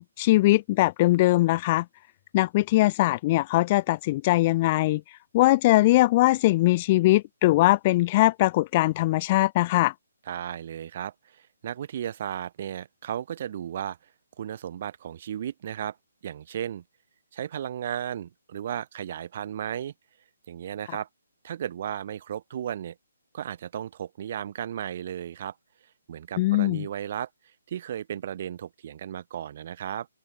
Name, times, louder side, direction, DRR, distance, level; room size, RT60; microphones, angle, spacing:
voice 1, 0.0-1.8 2.3-5.0 5.3-9.9 26.4-26.8, left 18 dB, 30° left, 0.5 m, -21 dB
voice 2, 10.3-14.0 14.4-16.0 16.2-16.8 17.3-19.9 20.5-21.1 21.4-23.0 23.3-25.5 26.1-27.3 27.7-30.1, right 10 dB, 45° right, 2.8 m, -34 dB
open air
hypercardioid pair, 150°, 0 cm